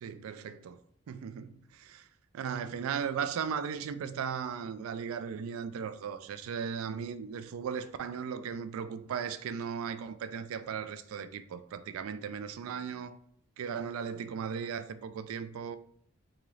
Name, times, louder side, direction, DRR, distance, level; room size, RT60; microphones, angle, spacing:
voice 1, 0.0-0.8 1.1-2.1 2.3-13.2 13.6-15.8, right 7 dB, 90° right, 0.3 m, -37 dB
3.6 x 2.8 x 3.2 m
head